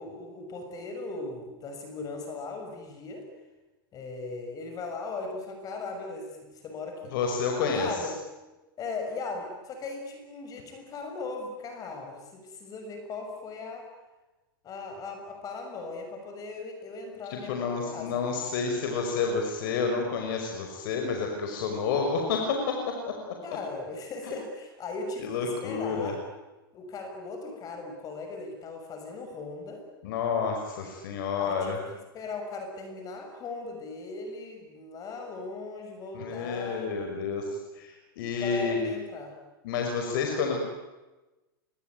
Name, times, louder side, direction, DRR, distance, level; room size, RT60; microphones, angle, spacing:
voice 1, 0.0-3.3 3.9-7.1 7.7-8.2 8.8-13.9 14.6-18.2 23.4-26.2 26.7-29.8 31.4-31.8 32.1-36.9 38.4-39.4, left 3 dB, 30° left, 4 dB, 6.4 m, -38 dB
voice 2, 7.1-7.9 17.3-22.8 23.1-23.2 24.2-24.3 25.2-26.1 30.0-31.8 36.1-39.0 39.6-40.6, left 5 dB, 60° left, 3 dB, 5.8 m, -29 dB
27.5 x 23.0 x 9.4 m, 1.1 s
hypercardioid pair, 125°, 12 cm